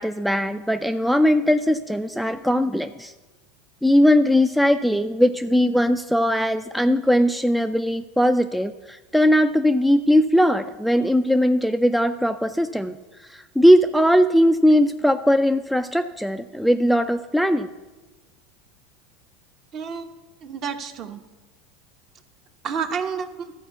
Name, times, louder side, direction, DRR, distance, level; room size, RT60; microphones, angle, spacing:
voice 1, 0.0-3.1 3.8-13.0 13.3-17.7, equal, ahead, 8 dB, 0.3 m, -19 dB
voice 2, 19.7-20.1 20.4-21.2 22.6-23.5, right 6 dB, 40° right, 7 dB, 0.9 m, -30 dB
12.5 x 4.5 x 8.0 m, 1.2 s
supercardioid pair, 120°, 0 cm